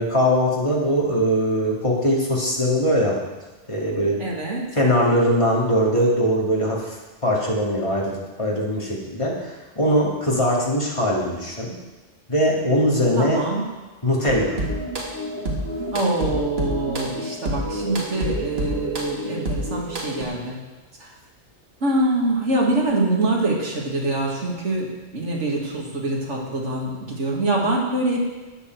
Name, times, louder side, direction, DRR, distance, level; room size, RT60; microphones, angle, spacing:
voice 1, 0.0-3.2 3.7-4.3 4.7-7.0 7.2-11.7 12.3-13.4 14.0-14.6, equal, 25° left, -3 dB, 2.3 m, -21 dB
voice 2, 4.2-4.7 13.2-13.6 15.9-20.6 21.0-21.1 21.8-28.3, right 2 dB, 70° right, -2 dB, 2.5 m, -24 dB
sound 1, 14.3-20.2, right 1 dB, 55° right, 2.1 m, -28 dB
12.5 x 8.7 x 4.6 m, 1.2 s
omnidirectional pair, 1.3 m